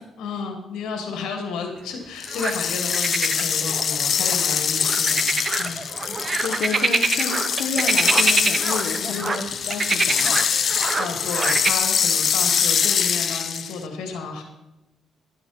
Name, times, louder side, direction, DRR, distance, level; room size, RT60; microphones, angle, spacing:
voice 1, 0.2-5.8 9.0-9.3 10.9-14.4, left 4 dB, 85° left, 3 dB, 2.4 m, -32 dB
sound 1, 2.2-13.8, left 7 dB, 55° left, 0.7 m, -24 dB
sound 2, 2.3-2.5 2.9-9.4 9.7-11.7, right 3 dB, 30° right, 0.9 m, -25 dB
voice 2, 6.2-10.4, left 5 dB, 70° left, 2 dB, 1.1 m, -30 dB
12.5 x 10.0 x 4.3 m, 0.97 s
cardioid pair, 90°, 0 cm